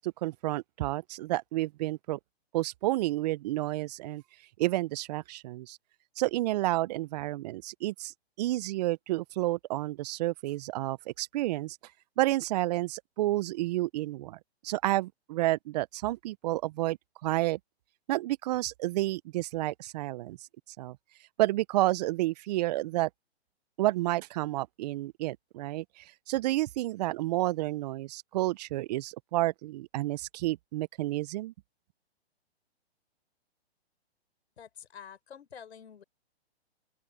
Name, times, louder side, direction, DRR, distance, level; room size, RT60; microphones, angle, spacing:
voice 1, 0.0-2.2 2.5-4.2 4.6-5.8 6.2-11.8 12.2-14.4 14.6-17.6 18.1-20.4 20.8-21.0 21.4-23.1 23.8-31.5, right 17 dB, 40° right, 0.7 m, -30 dB
voice 2, 34.6-36.0, left 8 dB, 70° left, 4.6 m, -48 dB
open air
hypercardioid pair, 135°, 33 cm